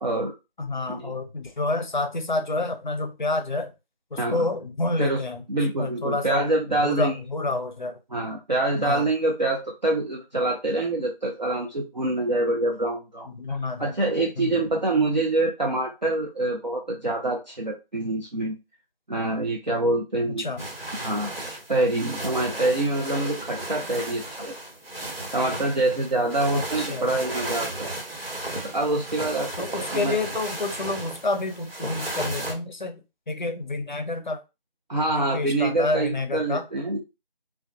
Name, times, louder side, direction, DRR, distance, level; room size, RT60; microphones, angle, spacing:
voice 1, 0.0-0.3 0.9-1.1 4.2-4.4 5.0-5.2 5.5-7.2 8.1-13.3 13.8-18.6 19.1-20.5 20.9-24.5 25.3-27.9 28.4-30.2 34.9-37.0, right 2 dB, 50° right, -1 dB, 0.5 m, -26 dB
voice 2, 0.6-3.7 4.1-5.4 5.8-6.5 6.8-8.0 8.8-9.1 13.4-14.0 14.4-14.6 20.3-20.6 26.5-27.1 29.6-34.4 35.1-36.7, left 2 dB, 55° left, 6 dB, 0.5 m, -29 dB
sound 1, 20.6-32.5, right 1 dB, 75° right, 1.2 m, -34 dB
2.2 x 2.2 x 2.5 m, 0.26 s
figure-of-eight pair, 175°, 29 cm